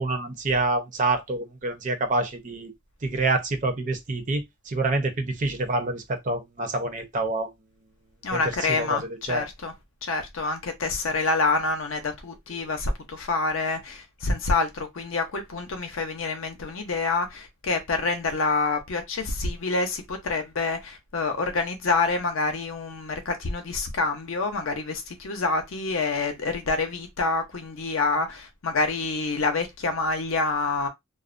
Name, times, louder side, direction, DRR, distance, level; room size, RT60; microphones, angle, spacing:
voice 1, 0.0-2.7 3.0-7.5 8.3-8.4 8.7-9.4, right 2 dB, 35° right, 0.6 m, -27 dB
voice 2, 8.2-9.7 10.0-30.9, left 3 dB, 75° left, 0.6 m, -27 dB
2.4 x 2.1 x 2.4 m
head